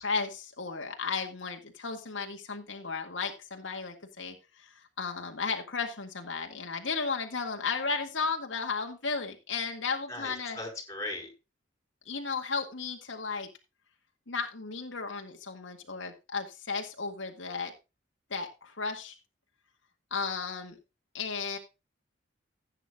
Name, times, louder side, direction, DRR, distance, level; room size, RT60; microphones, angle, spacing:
voice 1, 0.0-10.6 12.1-13.5 14.3-17.7 18.3-19.2 20.1-20.8 21.1-21.6, left 4 dB, 80° left, 3 dB, 2.0 m, -34 dB
voice 2, 10.1-11.3, left 1 dB, 15° left, 3 dB, 4.4 m, -38 dB
16.0 x 8.9 x 2.4 m, 0.27 s
head